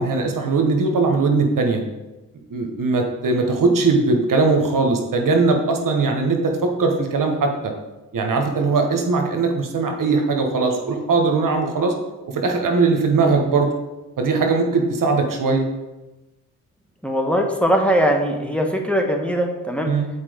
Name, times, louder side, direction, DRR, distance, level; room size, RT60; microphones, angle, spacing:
voice 1, 0.0-1.8 2.5-7.7 8.1-11.9 12.3-13.7 14.2-15.6 19.8-20.1, right 3 dB, 60° right, 3 dB, 1.2 m, -20 dB
voice 2, 3.3-3.6 17.0-19.9, equal, 5° left, 2 dB, 1.3 m, -21 dB
7.4 x 4.3 x 5.0 m, 1.1 s
supercardioid pair, 45°, 36 cm